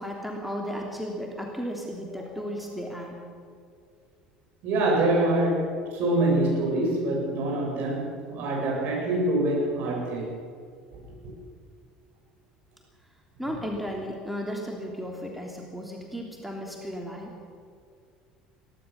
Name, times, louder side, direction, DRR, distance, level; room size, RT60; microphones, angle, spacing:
voice 1, 0.0-3.2 5.1-5.2 13.4-17.3, equal, ahead, 0 dB, 3.2 m, -34 dB
voice 2, 4.6-10.3 11.2-11.3, right 1 dB, 50° right, -1 dB, 8.0 m, -25 dB
22.5 x 17.5 x 7.1 m, 2.2 s
figure-of-eight pair, 65°, 4 cm